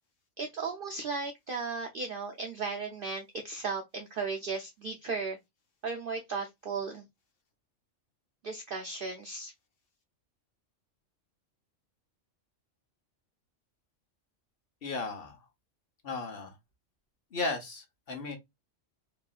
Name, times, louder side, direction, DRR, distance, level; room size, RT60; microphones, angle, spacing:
voice 1, 0.4-5.4 5.8-7.0 8.4-9.5, right 4 dB, 60° right, 0.6 m, -36 dB
voice 2, 14.8-15.4 16.0-16.5 17.3-18.4, left 3 dB, 50° left, 1.1 m, -35 dB
3.0 x 2.6 x 2.3 m
omnidirectional pair, 1.3 m